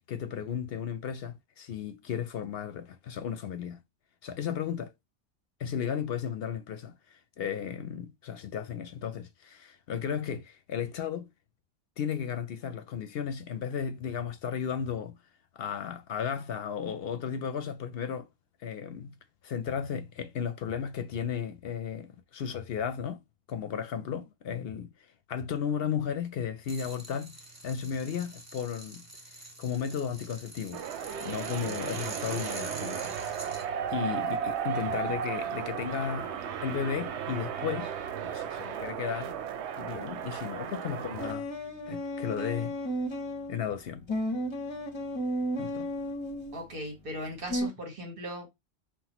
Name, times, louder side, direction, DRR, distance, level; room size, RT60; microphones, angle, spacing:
voice 1, 0.1-3.8 4.2-4.9 5.6-11.3 12.0-15.2 15.6-18.3 18.6-19.1 19.4-23.2 23.5-24.9 25.3-27.4 27.6-29.0 29.3-30.8 31.2-33.6 33.9-37.9 38.2-39.4 39.8-41.5 41.9-42.7 43.5-44.1 45.6-45.9, left 7 dB, 65° left, 0.7 m, -34 dB
sound 1, 26.6-33.6, right 1 dB, 15° right, 0.8 m, -45 dB
sound 2, 30.7-41.3, right 8 dB, 85° right, 0.9 m, -35 dB
Teak saxophone sounds like Duduk, 41.2-43.6 44.1-46.6 47.5-47.7, equal, 30° left, 0.7 m, -33 dB
voice 2, 46.5-48.5, equal, 55° right, 1.4 m, -38 dB
5.7 x 2.1 x 2.9 m
omnidirectional pair, 1.1 m